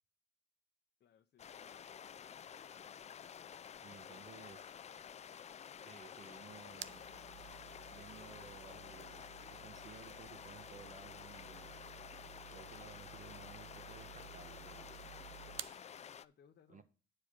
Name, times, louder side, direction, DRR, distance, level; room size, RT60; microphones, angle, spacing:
voice 1, 1.0-2.2 4.1-4.3 16.2-16.8, left 8 dB, 55° left, 0.7 m, -67 dB
sound 1, 1.4-16.2, left 8 dB, 35° left, 0.4 m, -51 dB
sound 2, 2.5-9.3, equal, 5° right, 1.2 m, -76 dB
voice 2, 3.8-4.6 5.8-7.1 7.9-11.8 12.5-15.0 16.7-16.8, right 6 dB, 40° right, 1.1 m, -57 dB
sound 3, 6.3-15.8, right 13 dB, 75° right, 0.5 m, -54 dB
8.6 x 4.8 x 6.1 m
cardioid pair, 90°, 20 cm